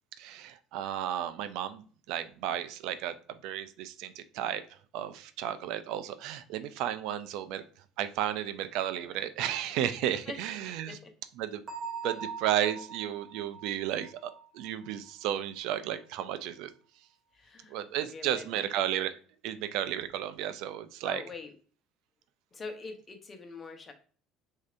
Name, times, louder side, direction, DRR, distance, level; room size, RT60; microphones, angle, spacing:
voice 1, 0.2-3.1 3.4-4.6 4.9-7.6 8.0-11.0 11.4-11.6 12.0-16.7 17.7-19.2 19.4-21.2, right 11 dB, 75° right, 11 dB, 0.4 m, -33 dB
voice 2, 10.0-10.4 10.9-11.1 17.3-17.8 18.1-18.7 21.0-21.5 22.5-23.9, left 3 dB, 30° left, 6 dB, 0.9 m, -44 dB
Bell, 11.7-15.3, right 5 dB, 30° right, 1.2 m, -42 dB
6.3 x 2.8 x 2.5 m, 0.42 s
supercardioid pair, 110°, 0 cm